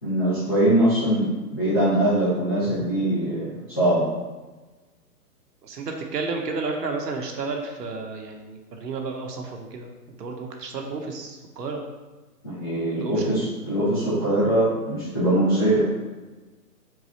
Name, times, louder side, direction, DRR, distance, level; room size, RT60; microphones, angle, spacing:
voice 1, 0.0-4.1 12.4-15.9, right 1 dB, 15° left, -13 dB, 0.5 m, -22 dB
voice 2, 5.6-9.9 10.2-11.8 13.0-13.5, right 4 dB, 75° right, 2 dB, 1.0 m, -32 dB
4.7 x 2.3 x 4.1 m, 1.2 s
hypercardioid pair, 155°, 48 cm